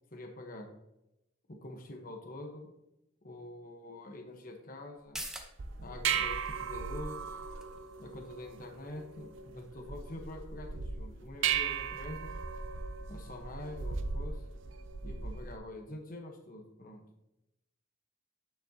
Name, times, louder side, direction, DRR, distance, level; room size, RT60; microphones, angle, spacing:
voice 1, 0.1-0.7 1.5-2.7 3.2-5.2 5.8-7.4 8.0-12.4 13.1-14.4 15.0-17.0, left 1 dB, 45° left, 3 dB, 1.1 m, -45 dB
sound 1, 4.9-12.1 12.4-12.5, right 1 dB, 5° right, 0.9 m, -51 dB
sound 2, 5.6-15.6, right 6 dB, 85° right, 0.6 m, -37 dB
9.3 x 7.2 x 2.8 m, 0.90 s
head